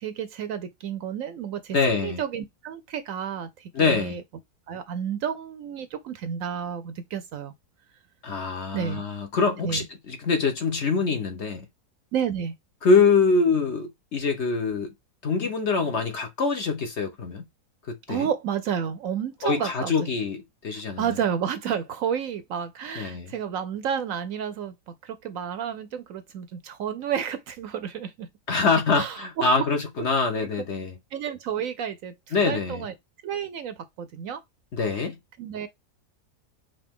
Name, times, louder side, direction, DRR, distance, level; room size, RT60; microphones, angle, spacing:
voice 1, 0.0-4.2 4.7-7.5 8.7-9.0 9.6-9.8 12.1-12.5 18.1-19.9 20.7-28.3 28.9-29.6 30.0-30.1 31.1-32.9 33.2-34.4 35.4-35.7, right 8 dB, 70° right, 0.9 m, -31 dB
voice 2, 1.7-2.2 3.7-4.2 8.2-11.6 12.8-14.9 15.2-17.4 17.9-18.3 19.4-21.1 23.0-23.3 28.5-30.9 32.3-32.8 34.7-35.1, left 4 dB, 50° left, 1.0 m, -24 dB
5.2 x 2.7 x 3.5 m
omnidirectional pair, 1.7 m